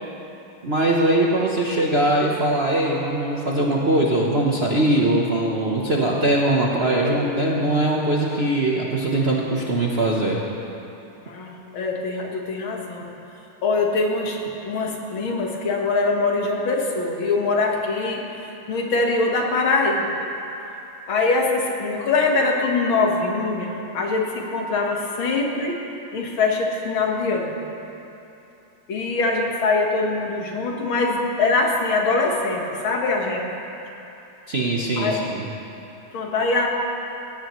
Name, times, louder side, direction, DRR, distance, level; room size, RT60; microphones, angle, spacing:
voice 1, 0.6-10.4 34.5-35.5, right 1 dB, 45° right, -3 dB, 0.8 m, -21 dB
voice 2, 11.3-13.1 13.6-18.3 18.7-20.2 21.1-25.8 26.1-27.6 28.9-33.5 35.0-35.2 36.1-36.7, left 3 dB, 70° left, 0 dB, 2.2 m, -23 dB
18.0 x 16.0 x 3.1 m, 2.9 s
omnidirectional pair, 2.3 m